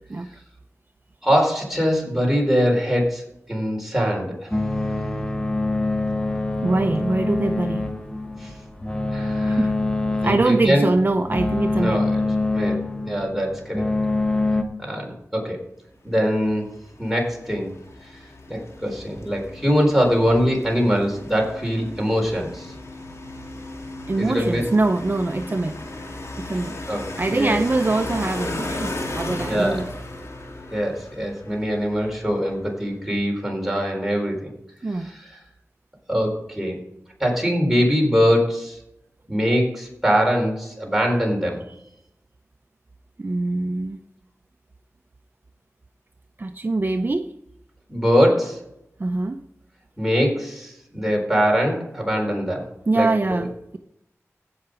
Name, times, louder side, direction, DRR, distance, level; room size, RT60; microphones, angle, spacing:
voice 1, 1.2-3.2 3.5-4.5 8.4-8.5 9.1-9.6 10.2-10.9 11.8-12.2 12.5-13.9 14.8-15.6 16.0-16.7 17.0-17.7 18.5-22.7 24.2-24.6 26.9-27.6 29.5-29.9 30.7-34.5 34.9-35.4 36.1-36.8 37.2-38.8 39.3-41.6 47.9-48.6 50.0-52.7 52.9-53.4, equal, 5° right, 0 dB, 4.1 m, -22 dB
sound 1, 4.5-14.6, left 2 dB, 15° left, 1.1 m, -25 dB
voice 2, 6.6-7.9 9.4-9.7 10.2-12.0 24.1-25.8 26.4-26.8 27.2-29.9 34.8-35.1 43.2-44.0 46.4-47.3 49.0-49.4 52.9-53.8, right 2 dB, 40° right, 7 dB, 0.5 m, -23 dB
sound 2, 16.4-32.6, left 2 dB, 65° left, 2.3 m, -35 dB
16.0 x 5.9 x 5.0 m, 0.82 s
wide cardioid pair, 70°, 5 cm